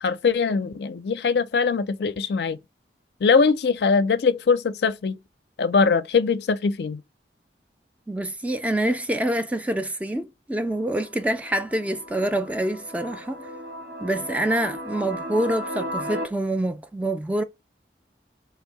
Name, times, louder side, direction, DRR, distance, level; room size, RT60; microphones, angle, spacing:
voice 1, 0.0-2.6 3.2-5.2 5.6-7.0, left 5 dB, 70° left, 0.4 m, -22 dB
voice 2, 8.1-13.4 14.0-17.4, right 1 dB, 10° right, 0.3 m, -26 dB
sound 1, 10.7-16.2, equal, 90° right, 1.4 m, -35 dB
3.3 x 2.7 x 4.5 m
head